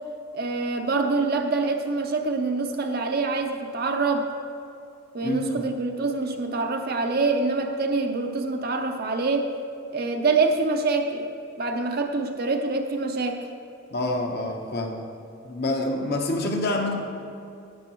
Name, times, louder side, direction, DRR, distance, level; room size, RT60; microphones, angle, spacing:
voice 1, 0.3-4.3 5.1-9.5 9.9-11.3 11.6-13.5, right 3 dB, 45° right, 4 dB, 0.7 m, -25 dB
voice 2, 5.2-5.6 13.9-15.1 15.4-17.0, left 1 dB, 50° left, 2 dB, 1.0 m, -27 dB
11.5 x 9.5 x 3.0 m, 2.5 s
head